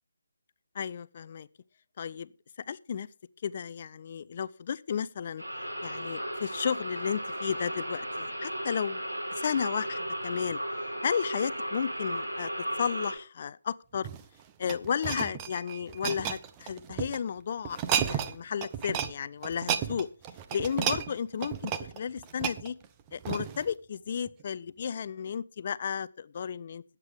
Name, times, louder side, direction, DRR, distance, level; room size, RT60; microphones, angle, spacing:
voice 1, 0.7-1.5 2.0-2.3 2.7-3.1 3.4-5.4 5.8-9.0 9.3-10.6 11.0-14.1 14.6-20.1 20.5-22.8 23.1-26.8, left 7 dB, 40° left, 0.6 m, -33 dB
sound 1, 5.4-13.1, equal, 90° right, 5.1 m, -35 dB
sound 2, 13.9-17.2 17.7-18.4 18.6-19.1 19.4-23.7 24.3-24.4, right 9 dB, 20° right, 0.8 m, -33 dB
20.5 x 8.2 x 3.6 m
figure-of-eight pair, 150°, 0 cm